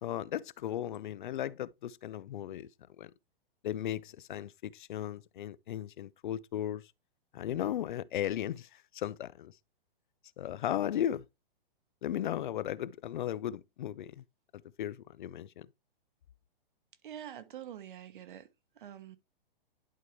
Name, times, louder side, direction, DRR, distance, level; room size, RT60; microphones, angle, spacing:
voice 1, 0.0-2.7 3.0-3.1 3.6-6.8 7.3-8.7 8.9-9.5 10.4-11.2 12.0-14.2 14.8-15.7, left 11 dB, 55° left, 0.5 m, -36 dB
voice 2, 17.0-18.5 18.7-19.2, right 10 dB, 55° right, 1.2 m, -45 dB
11.0 x 4.6 x 3.1 m
hypercardioid pair, 170°, 29 cm